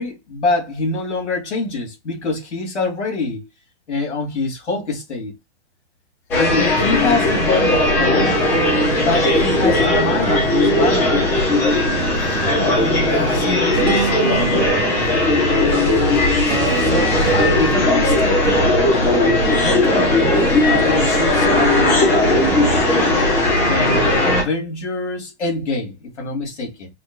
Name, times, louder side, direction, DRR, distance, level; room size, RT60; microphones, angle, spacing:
voice 1, 0.0-3.5 3.9-5.3 6.3-8.4 9.0-11.2 16.8-18.7 19.5-22.7 23.7-26.9, left 3 dB, 85° left, 2.4 m, -25 dB
sound 1, 6.3-24.4, left 2 dB, 5° left, 0.3 m, -17 dB
voice 2, 6.4-6.8 12.7-14.6 15.6-16.1, left 4 dB, 45° left, 1.6 m, -31 dB
Solea cantábrica, 7.5-22.8, right 8 dB, 60° right, 1.7 m, -28 dB
5.8 x 2.3 x 2.7 m
hypercardioid pair, 140°, 34 cm